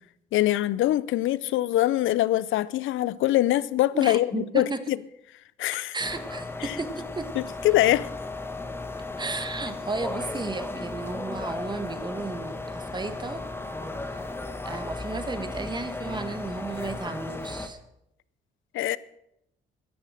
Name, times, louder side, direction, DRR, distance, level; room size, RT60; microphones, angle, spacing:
voice 1, 0.3-5.0 5.6-5.9 7.4-8.1 18.7-19.0, left 14 dB, 80° left, 0.6 m, -23 dB
voice 2, 3.9-4.8 5.9-7.3 9.2-13.4 14.0-14.3 14.6-17.8, right 3 dB, 20° right, 1.5 m, -34 dB
sound 1, 6.0-17.7, left 2 dB, 10° left, 1.5 m, -35 dB
14.0 x 10.5 x 6.5 m
cardioid pair, 90°, 20 cm